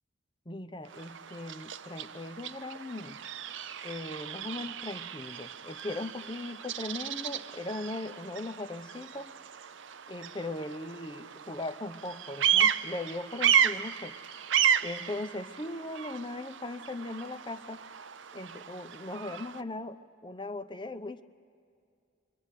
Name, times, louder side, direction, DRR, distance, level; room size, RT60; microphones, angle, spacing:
voice 1, 0.5-3.2 3.8-9.3 10.1-14.1 14.8-17.8 18.3-21.2, left 2 dB, 25° left, 10 dB, 0.8 m, -39 dB
Bird vocalization bird call bird song, 0.9-19.6, right 9 dB, 85° right, 0.7 m, -33 dB
29.0 x 23.5 x 8.4 m, 2.3 s
head